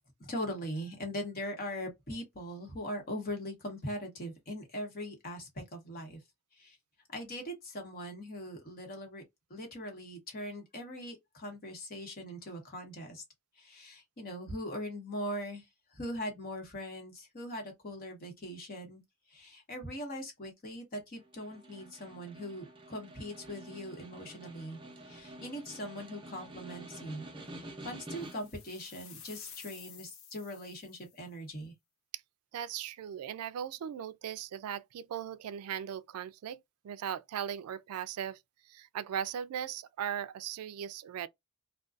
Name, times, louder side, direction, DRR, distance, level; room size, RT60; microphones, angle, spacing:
voice 1, 0.2-6.2 6.5-6.8 7.1-9.2 9.5-13.2 13.6-15.7 15.9-19.0 19.3-24.8 25.0-27.3 27.6-31.7, equal, 45° left, 1.0 m, -41 dB
Snare drum, 21.2-28.7, right 1 dB, 20° right, 0.6 m, -48 dB
sound 1, 28.2-31.2, left 8 dB, 65° left, 0.6 m, -51 dB
voice 2, 32.5-38.4 38.7-41.3, right 9 dB, 90° right, 0.3 m, -38 dB
2.4 x 2.2 x 2.4 m
head